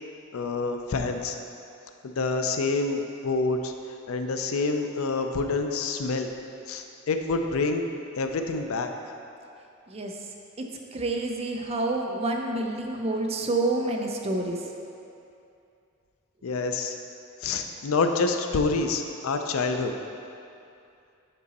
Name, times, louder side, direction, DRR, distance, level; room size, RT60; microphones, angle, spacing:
voice 1, 0.3-1.4 2.0-3.7 4.1-6.3 6.7-7.8 8.2-9.1 16.4-17.0 17.4-19.9, left 3 dB, 85° left, 5 dB, 0.5 m, -27 dB
voice 2, 9.9-10.2 10.9-14.6, right 2 dB, 30° right, 2 dB, 0.5 m, -28 dB
7.4 x 4.0 x 4.1 m, 2.6 s
head